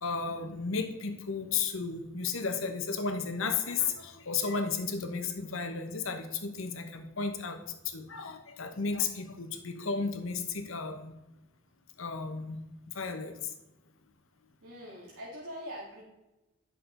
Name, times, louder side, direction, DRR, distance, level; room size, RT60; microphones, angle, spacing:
voice 1, 0.0-7.6 7.8-11.1 12.0-12.6 12.9-13.5, left 5 dB, 65° left, 7 dB, 1.0 m, -33 dB
voice 2, 14.6-16.0, equal, 85° right, -7 dB, 2.2 m, -43 dB
10.5 x 6.4 x 3.9 m, 1.0 s
head